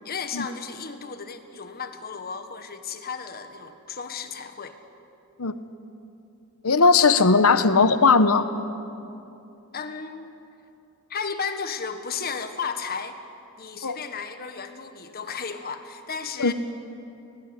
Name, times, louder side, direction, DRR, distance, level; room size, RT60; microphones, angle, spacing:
voice 1, 0.0-4.8 9.7-10.3 11.1-13.2 13.6-16.5, left 5 dB, 45° left, 8 dB, 1.4 m, -34 dB
voice 2, 6.6-8.5 13.8-14.0 16.4-16.5, left 4 dB, 75° left, 12 dB, 1.0 m, -18 dB
19.5 x 19.0 x 9.9 m, 2.8 s
head